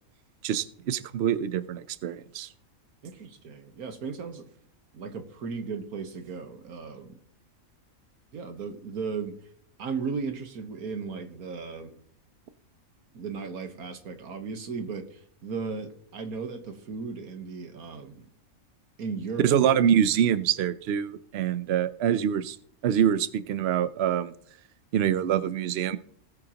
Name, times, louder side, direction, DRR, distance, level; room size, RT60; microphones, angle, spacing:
voice 1, 0.4-2.5 19.4-22.6 22.8-24.3 24.9-26.0, right 9 dB, 60° right, 14 dB, 0.8 m, -25 dB
voice 2, 3.0-4.5 4.9-7.2 8.3-9.4 9.8-11.9 13.1-18.2 19.0-19.5, right 5 dB, 85° right, 7 dB, 1.7 m, -36 dB
19.0 x 7.8 x 2.9 m, 0.63 s
omnidirectional pair, 1.5 m